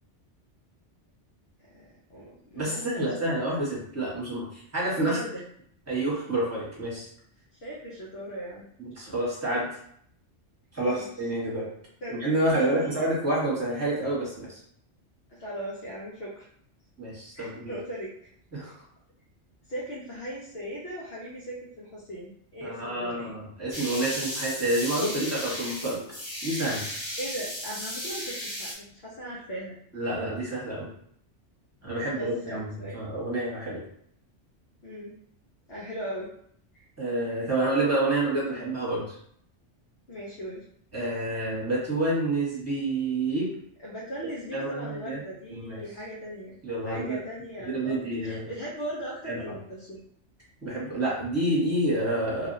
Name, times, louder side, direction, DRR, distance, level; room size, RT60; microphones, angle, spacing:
voice 1, 1.7-3.3 5.0-5.4 7.5-8.7 10.9-11.1 12.0-12.2 12.5-13.1 15.3-16.5 17.3-18.1 19.7-23.3 27.2-29.8 32.2-33.0 34.8-35.1 35.7-36.3 36.7-36.9 40.1-40.6 43.8-46.6 46.8-50.0, right 1 dB, 60° left, -6 dB, 1.0 m, -38 dB
voice 2, 2.6-5.1 5.9-7.1 8.8-9.7 10.7-11.7 12.1-14.6 17.0-17.7 18.5-18.7 22.6-26.0 26.4-26.8 29.9-30.9 31.8-32.7 32.9-33.8 37.0-39.1 40.9-43.5 44.5-45.2 45.5-45.8 46.6-47.2 47.6-48.5 49.3-49.5 50.6-52.5, right 1 dB, 15° right, -7 dB, 1.2 m, -28 dB
sound 1, 23.7-28.7, equal, 35° left, 1.1 m, -35 dB
3.0 x 2.6 x 2.6 m, 0.66 s
omnidirectional pair, 1.2 m